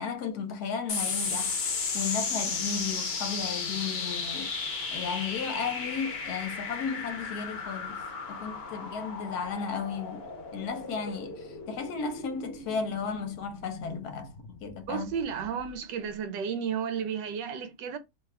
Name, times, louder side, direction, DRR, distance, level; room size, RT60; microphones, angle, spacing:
voice 1, 0.0-1.6 1.9-4.5 4.9-8.0 8.3-15.1, left 6 dB, 70° left, 1.1 m, -34 dB
sound 1, 0.9-15.7, left 4 dB, 50° left, 0.8 m, -35 dB
voice 2, 14.9-18.0, right 7 dB, 85° right, 1.3 m, -33 dB
3.0 x 2.3 x 3.2 m
omnidirectional pair, 1.9 m